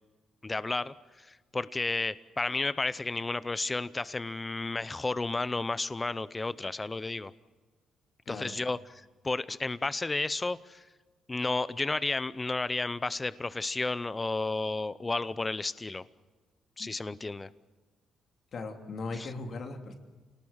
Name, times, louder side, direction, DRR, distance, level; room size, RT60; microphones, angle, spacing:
voice 1, 0.4-7.3 8.3-10.8 11.3-16.0 16.8-17.5 19.1-19.3, left 3 dB, 20° left, 17 dB, 0.6 m, -32 dB
voice 2, 18.5-19.9, left 3 dB, 55° left, 5 dB, 2.9 m, -38 dB
28.0 x 19.0 x 7.3 m, 1.4 s
cardioid pair, 90°, 0 cm